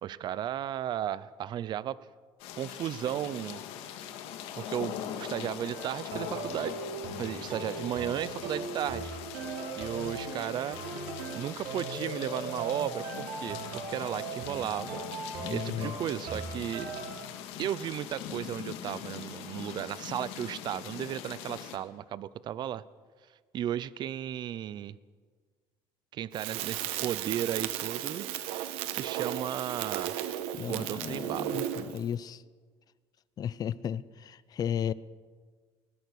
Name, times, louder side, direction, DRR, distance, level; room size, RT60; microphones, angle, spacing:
voice 1, 0.0-2.0 2.5-3.9 4.5-6.8 7.2-9.1 9.8-10.8 11.3-15.0 15.5-16.9 17.6-22.8 23.5-25.0 26.1-30.2 30.6-31.6, right 11 dB, 50° right, 0.7 m, -35 dB
sound 1, 2.4-21.8, left 9 dB, 80° left, 2.3 m, -42 dB
sound 2, 5.7-17.1, right 3 dB, 70° right, 4.8 m, -39 dB
voice 2, 15.4-15.9 30.5-32.4 33.4-34.9, left 9 dB, 40° left, 0.6 m, -34 dB
Crackle, 26.3-32.0, right 12 dB, 90° right, 1.4 m, -35 dB
20.5 x 20.5 x 6.4 m
cardioid pair, 120°, 10 cm